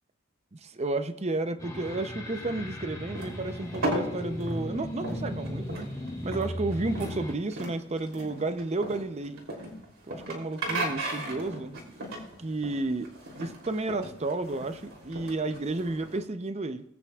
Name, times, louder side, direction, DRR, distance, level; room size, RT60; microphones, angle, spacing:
voice 1, 0.5-5.9 6.2-9.4 10.1-12.0 12.4-13.1 13.4-16.8, right 2 dB, 30° right, 10 dB, 0.7 m, -32 dB
sound 1, 1.6-7.3, equal, 15° left, 1.7 m, -37 dB
sound 2, 3.2-16.2, right 1 dB, 80° right, 3.1 m, -36 dB
20.0 x 8.9 x 2.4 m, 0.77 s
head